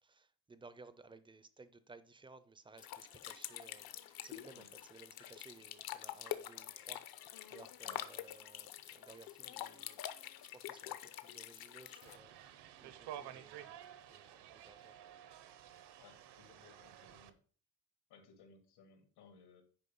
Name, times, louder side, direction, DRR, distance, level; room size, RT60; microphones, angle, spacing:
voice 1, 0.0-3.9 4.2-10.0 10.5-13.8 14.1-15.0, right 3 dB, 15° right, 0.4 m, -58 dB
sound 1, 2.8-12.2, left 12 dB, 65° left, 0.8 m, -46 dB
sound 2, 12.0-17.3, right 11 dB, 80° right, 1.0 m, -52 dB
voice 2, 16.0-17.4 18.1-19.6, left 5 dB, 85° left, 2.7 m, -61 dB
10.0 x 4.9 x 5.4 m
cardioid pair, 180°, 39 cm